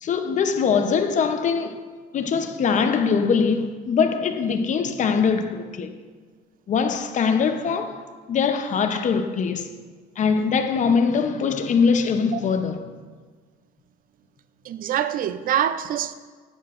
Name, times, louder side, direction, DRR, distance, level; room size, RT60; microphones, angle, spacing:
voice 1, 0.0-1.8 2.1-5.9 6.7-9.7 10.2-12.9, left 5 dB, 45° left, 0.7 m, -22 dB
voice 2, 14.6-16.1, right 10 dB, 55° right, 0.4 m, -25 dB
10.0 x 9.5 x 2.5 m
cardioid pair, 110°, 17 cm